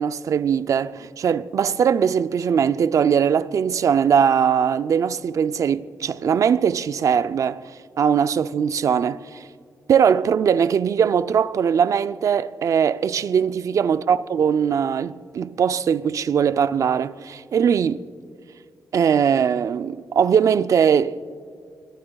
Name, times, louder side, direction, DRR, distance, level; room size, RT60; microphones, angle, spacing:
voice 1, 0.0-7.6 8.0-9.4 9.9-18.0 18.9-21.2, right 7 dB, 55° right, 0.4 m, -20 dB
24.0 x 21.5 x 2.3 m
wide cardioid pair, 135°, 6 cm